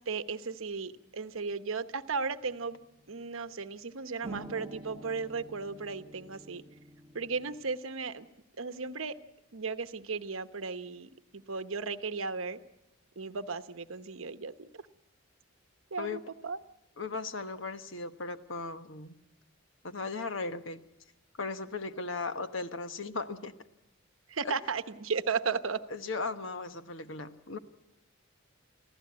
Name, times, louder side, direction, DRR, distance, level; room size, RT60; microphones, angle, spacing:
voice 1, 0.0-2.8 3.1-6.6 7.1-8.3 8.6-9.1 9.5-12.6 13.2-14.8 15.9-16.6 24.3-25.8, right 5 dB, 75° right, 11 dB, 1.0 m, -35 dB
sound 1, 2.4-3.5 4.2-7.6, right 1 dB, 15° right, 1.4 m, -48 dB
voice 2, 17.0-19.2 19.8-20.8 21.4-23.6 24.4-24.6 25.9-27.6, left 3 dB, 65° left, 10 dB, 1.2 m, -37 dB
24.5 x 15.5 x 9.6 m, 0.90 s
head